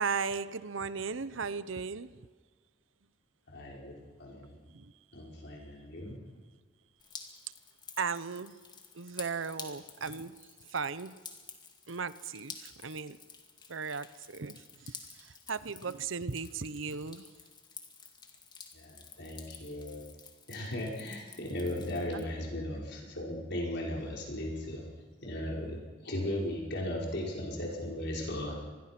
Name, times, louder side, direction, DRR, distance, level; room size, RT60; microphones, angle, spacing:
voice 1, 0.0-2.2 4.7-4.9 8.0-8.5 8.9-11.2 11.9-13.2 13.7-17.3 22.1-22.3, right 5 dB, 70° right, 15 dB, 0.8 m, -36 dB
voice 2, 3.5-4.5 5.1-6.2 18.7-20.0 20.5-24.8 25.2-25.8 26.0-28.6, left 1 dB, 60° left, -1 dB, 5.3 m, -37 dB
Drip, 7.0-22.2, left 5 dB, 20° left, 2.3 m, -51 dB
26.0 x 21.0 x 6.0 m, 1.5 s
head